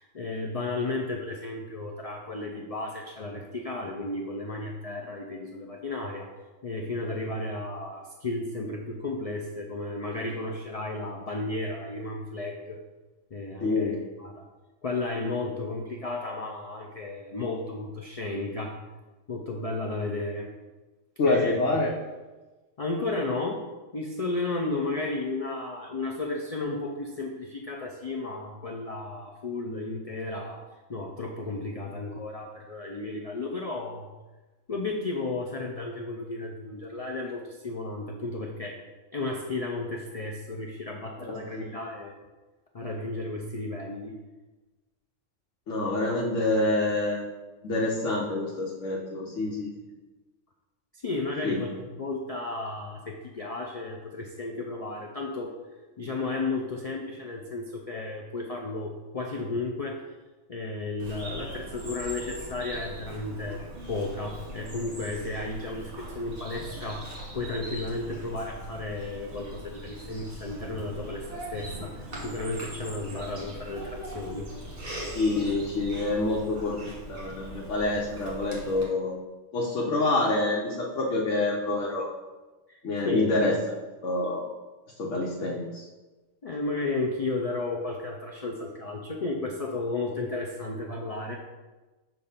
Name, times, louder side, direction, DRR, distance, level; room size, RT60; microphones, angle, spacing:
voice 1, 0.0-6.3 6.6-12.8 13.3-14.4 14.8-18.8 19.3-20.5 21.3-21.6 22.8-23.6 23.9-30.6 30.9-34.1 34.7-38.8 39.1-42.2 42.7-44.2 50.9-55.5 56.0-60.1 60.5-63.6 63.9-74.5 82.7-82.8 83.0-83.3 86.4-91.4, left 2 dB, 50° left, 0 dB, 0.4 m, -33 dB
voice 2, 13.6-14.0 21.2-21.9 41.5-41.7 45.7-47.2 47.6-49.7 51.4-51.7 75.1-79.2 79.5-82.1 82.8-83.6 84.0-84.5 85.0-85.8, left 2 dB, 85° left, -3 dB, 1.1 m, -27 dB
Bird vocalization bird call bird song, 61.0-78.8, right 1 dB, 50° right, 1.7 m, -41 dB
6.7 x 2.6 x 5.5 m, 1.2 s
omnidirectional pair, 1.2 m